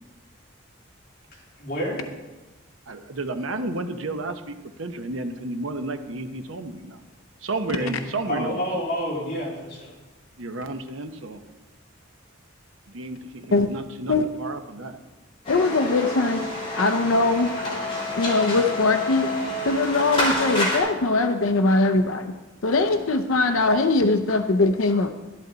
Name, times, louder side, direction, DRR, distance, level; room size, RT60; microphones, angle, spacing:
voice 1, 1.3-2.0 7.8-8.0 8.2-9.9, equal, 50° left, -6 dB, 3.9 m, -29 dB
voice 2, 2.9-7.0 7.4-8.6 10.4-11.4 12.9-15.0, right 2 dB, 80° right, 7 dB, 0.9 m, -32 dB
sound 1, 15.4-20.8, left 1 dB, 25° left, 3.0 m, -28 dB
voice 3, 15.5-16.4 16.7-17.5 18.2-19.3 19.7-22.3 22.6-25.1, left 3 dB, 85° left, 7 dB, 0.6 m, -21 dB
12.5 x 11.5 x 4.0 m, 1.2 s
head